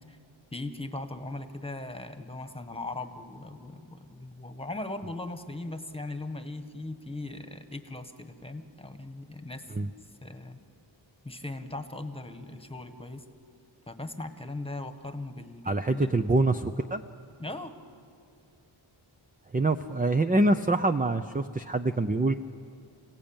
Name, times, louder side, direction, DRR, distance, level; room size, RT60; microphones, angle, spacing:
voice 1, 0.5-10.6 11.2-13.2 13.9-16.1 17.4-17.7, left 2 dB, 10° left, 8 dB, 1.5 m, -39 dB
voice 2, 15.7-17.0 19.5-22.3, right 2 dB, 20° right, 7 dB, 0.6 m, -25 dB
28.0 x 16.5 x 8.9 m, 2.4 s
wide cardioid pair, 75°, 48 cm